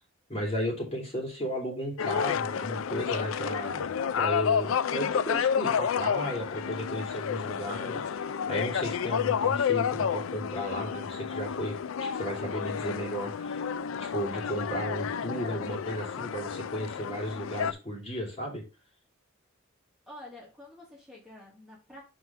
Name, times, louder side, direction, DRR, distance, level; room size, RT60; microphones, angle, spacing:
voice 1, 0.3-13.6 14.0-18.6, equal, 30° left, -2 dB, 3.2 m, -34 dB
sound 1, 2.0-17.7, left 7 dB, 75° left, 0.4 m, -30 dB
voice 2, 20.1-22.0, left 1 dB, ahead, -5 dB, 2.6 m, -48 dB
6.4 x 4.6 x 4.3 m, 0.28 s
head